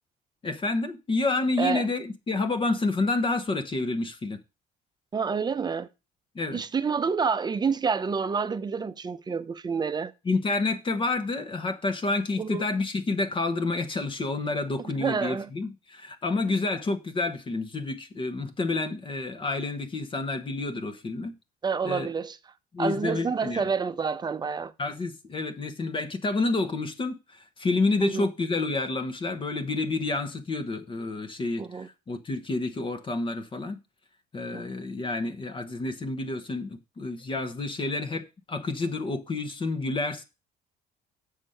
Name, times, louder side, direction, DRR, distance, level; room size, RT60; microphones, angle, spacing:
voice 1, 0.4-4.4 6.3-6.6 10.2-21.4 21.8-22.1 22.7-23.6 24.8-33.8 34.3-40.2, left 3 dB, 30° left, 1.1 m, -29 dB
voice 2, 5.1-5.9 6.5-10.1 12.4-12.7 15.0-15.5 21.6-22.4 22.8-24.7 28.0-28.3 31.6-31.9 34.5-34.8, right 5 dB, 25° right, 0.7 m, -28 dB
7.0 x 6.6 x 5.6 m
cardioid pair, 110°, 17 cm